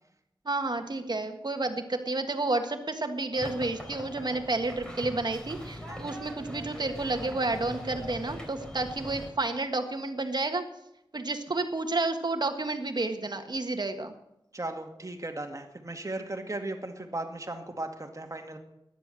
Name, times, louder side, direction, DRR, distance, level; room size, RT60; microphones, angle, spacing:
voice 1, 0.4-10.6 11.1-14.1, right 2 dB, 55° right, 7 dB, 1.6 m, -30 dB
sound 1, 3.3-9.3, equal, 10° left, 4.2 m, -41 dB
voice 2, 14.5-18.6, right 2 dB, 40° right, 5 dB, 2.0 m, -37 dB
13.5 x 10.5 x 7.6 m, 0.84 s
wide cardioid pair, 55°, 9 cm